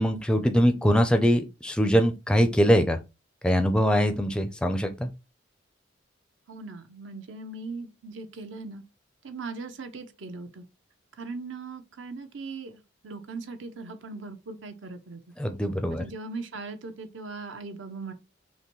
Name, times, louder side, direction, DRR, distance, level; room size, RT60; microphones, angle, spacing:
voice 1, 0.0-3.0 3.4-5.1 15.4-16.0, equal, 5° left, 0.4 m, -22 dB
voice 2, 6.5-8.8 9.2-10.6 11.2-15.2 15.9-18.1, right 3 dB, 65° right, 0.6 m, -39 dB
5.6 x 2.2 x 3.0 m
head